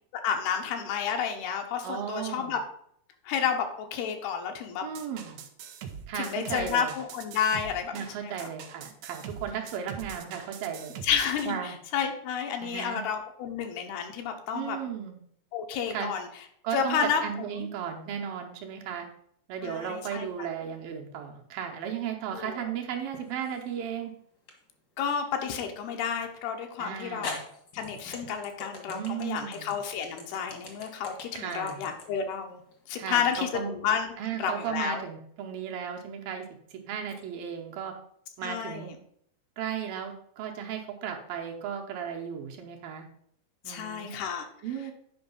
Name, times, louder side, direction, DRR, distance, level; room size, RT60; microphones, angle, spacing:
voice 1, 0.1-2.6 3.2-4.8 6.1-8.5 11.0-14.8 15.5-16.3 16.7-17.7 19.6-20.3 22.3-22.7 25.0-27.4 27.7-32.6 32.9-34.1 34.4-35.0 38.4-39.0 43.7-44.5, left 7 dB, 80° left, 4 dB, 3.0 m, -31 dB
voice 2, 1.8-2.5 4.8-5.4 6.1-7.0 7.9-11.0 11.5-11.8 12.6-13.0 14.5-15.2 15.9-16.1 16.6-19.1 19.5-24.1 26.8-27.4 28.9-29.8 31.3-31.8 32.9-33.7 34.2-36.5 36.7-37.9 38.4-38.9 39.6-43.1 43.6-44.2 44.6-44.9, right 8 dB, 75° right, 2 dB, 2.5 m, -35 dB
sound 1, 4.9-11.6, right 7 dB, 90° right, 1.6 m, -43 dB
sound 2, 23.1-23.7 24.5-24.6 26.5-26.6 27.2-33.4, left 3 dB, 50° left, 1.2 m, -42 dB
8.7 x 5.2 x 5.4 m, 0.67 s
omnidirectional pair, 4.4 m